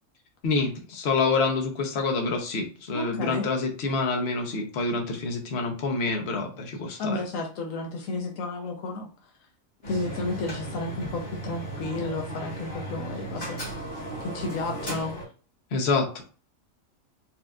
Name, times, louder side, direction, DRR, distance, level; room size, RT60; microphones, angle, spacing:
voice 1, 0.4-7.2 15.7-16.2, left 3 dB, 55° left, 2 dB, 1.0 m, -27 dB
voice 2, 2.9-3.4 7.0-9.1 9.9-13.6 14.2-15.2, left 3 dB, 80° left, 2 dB, 1.0 m, -32 dB
sound 1, 9.8-15.2, right 1 dB, 35° left, 1.3 m, -36 dB
4.3 x 2.5 x 2.3 m, 0.37 s
omnidirectional pair, 1.4 m